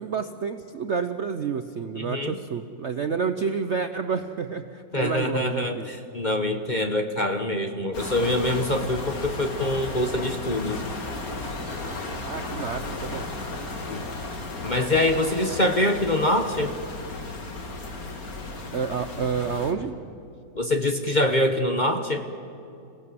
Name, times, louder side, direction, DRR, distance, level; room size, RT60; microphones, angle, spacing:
voice 1, 0.0-5.9 12.2-13.3 18.7-20.0, right 6 dB, 55° right, 8 dB, 0.8 m, -29 dB
voice 2, 2.0-2.4 4.9-10.8 13.9-14.0 14.6-16.7 20.6-22.3, left 1 dB, 30° left, 6 dB, 0.9 m, -24 dB
sound 1, 7.9-19.7, left 2 dB, 50° left, 2.4 m, -34 dB
27.0 x 17.0 x 7.8 m, 2.7 s
omnidirectional pair, 2.0 m